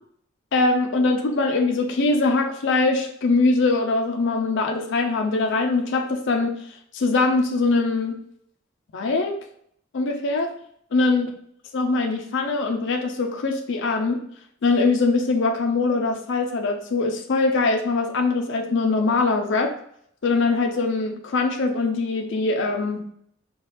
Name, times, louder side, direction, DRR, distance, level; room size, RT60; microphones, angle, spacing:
voice 1, 0.5-6.6 6.9-8.2 8.9-9.4 9.9-10.5 10.9-11.3 11.7-14.2 14.6-19.7 20.2-23.0, left 3 dB, 60° left, 4 dB, 0.5 m, -22 dB
4.5 x 2.4 x 3.3 m, 0.68 s
head